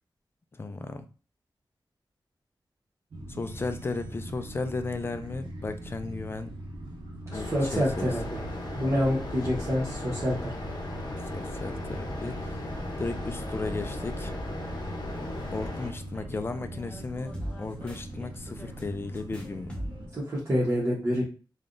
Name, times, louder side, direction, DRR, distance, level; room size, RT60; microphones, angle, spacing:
voice 1, 0.5-1.1 3.3-6.5 7.3-8.1 11.3-12.4 13.0-14.3 15.5-19.8, left 3 dB, 30° left, 8 dB, 0.4 m, -35 dB
sound 1, 3.1-20.1, right 1 dB, 75° right, 0.7 m, -41 dB
sound 2, 7.3-15.9, left 1 dB, 60° left, 0.7 m, -36 dB
voice 2, 7.3-8.2 8.7-10.6 20.1-21.2, equal, 35° right, -6 dB, 1.1 m, -27 dB
sound 3, 11.6-20.2, equal, 15° left, 0.8 m, -45 dB
3.4 x 2.3 x 2.5 m, 0.36 s
wide cardioid pair, 110°, 8 cm